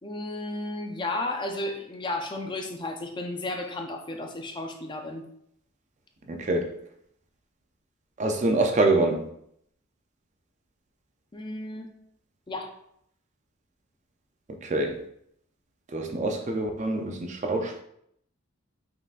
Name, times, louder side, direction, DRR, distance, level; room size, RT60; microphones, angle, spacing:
voice 1, 0.0-5.3 11.3-11.9 12.5-12.7, left 2 dB, 20° left, 0.4 m, -33 dB
voice 2, 6.3-6.7 8.2-9.3 14.6-15.0 15.9-17.8, right 2 dB, 35° right, 0.5 m, -25 dB
5.6 x 3.8 x 2.5 m
head